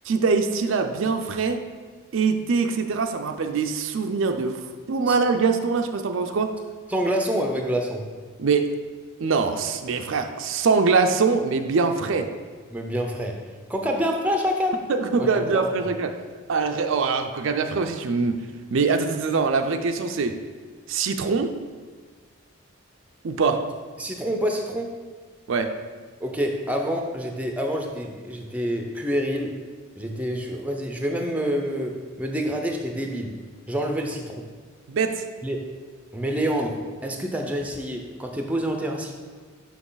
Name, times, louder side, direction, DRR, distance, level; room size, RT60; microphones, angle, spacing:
voice 1, 0.1-1.6 2.1-4.6 4.9-6.6 8.4-8.7 9.2-12.3 14.9-16.2 16.5-18.5 18.7-20.4 20.9-21.6 23.2-23.7 25.5-25.7 34.9-35.2, right 4 dB, 60° right, 6 dB, 0.4 m, -23 dB
voice 2, 6.9-8.1 12.7-14.8 15.2-15.9 24.0-25.0 26.2-29.6 29.9-33.4 33.7-34.5 35.4-35.6 36.1-39.1, equal, 5° right, 2 dB, 0.5 m, -27 dB
6.0 x 5.9 x 3.9 m, 1.5 s
head